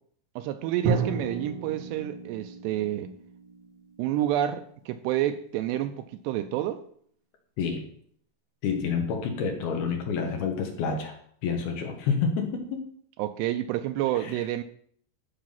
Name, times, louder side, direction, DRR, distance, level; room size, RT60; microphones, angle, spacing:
voice 1, 0.4-3.1 4.0-6.8 13.2-14.6, right 12 dB, 85° right, 2.5 m, -29 dB
Drum, 0.9-4.6, right 4 dB, 65° right, 3.2 m, -33 dB
voice 2, 8.6-11.1 11.4-12.8 14.2-14.3, left 5 dB, 65° left, 3.0 m, -28 dB
13.5 x 6.0 x 5.8 m
omnidirectional pair, 5.3 m